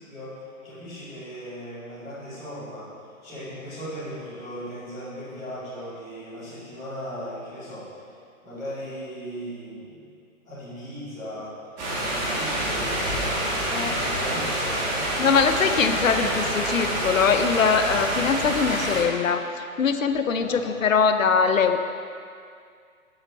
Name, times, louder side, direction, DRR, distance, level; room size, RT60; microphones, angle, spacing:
voice 1, 0.1-2.9 3.2-8.1 8.4-10.0 10.4-11.7 12.0-15.0 20.3-20.8, equal, ahead, -20 dB, 0.4 m, -38 dB
sound 1, 11.8-19.0, right 1 dB, 30° right, 2.6 m, -27 dB
voice 2, 15.2-21.8, left 6 dB, 65° left, 8 dB, 0.8 m, -22 dB
15.0 x 7.6 x 3.1 m, 2.3 s
figure-of-eight pair, 130°, 43 cm